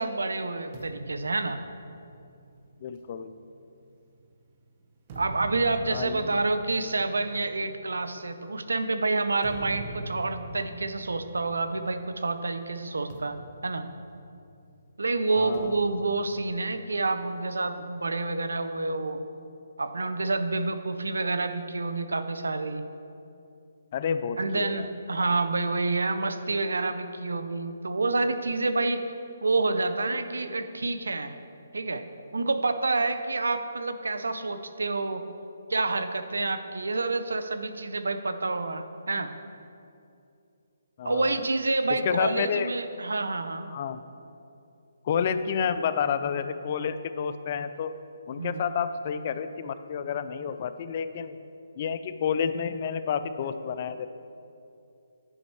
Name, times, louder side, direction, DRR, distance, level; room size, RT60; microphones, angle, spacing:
voice 1, 0.0-1.6 5.2-13.4 13.6-13.8 15.0-19.2 19.8-22.8 24.4-29.0 29.4-31.4 31.7-32.0 32.3-35.2 35.7-39.3 41.0-43.7 48.4-48.6, right 3 dB, 85° right, 10 dB, 0.5 m, -28 dB
sound 1, 0.7-4.3 4.8-12.3 12.5-12.8 13.1-14.7 15.5-17.3, right 1 dB, 35° right, 0.9 m, -44 dB
voice 2, 2.8-3.3 5.8-6.4 15.4-15.8 23.9-24.9 41.0-41.5 41.9-42.7 43.7-44.0 45.0-47.9 48.3-51.4 51.8-54.1, left 7 dB, 40° left, 11 dB, 0.4 m, -30 dB
9.9 x 5.2 x 4.6 m, 2.6 s
hypercardioid pair, 150°, 0 cm